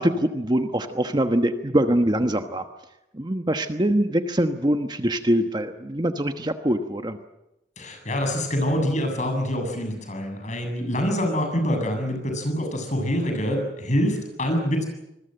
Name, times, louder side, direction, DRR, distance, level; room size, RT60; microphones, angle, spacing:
voice 1, 0.0-2.6 3.1-7.2, right 1 dB, 25° right, 7 dB, 1.2 m, -23 dB
voice 2, 7.8-14.8, equal, 45° left, 5 dB, 7.7 m, -25 dB
26.5 x 21.5 x 7.9 m, 0.90 s
head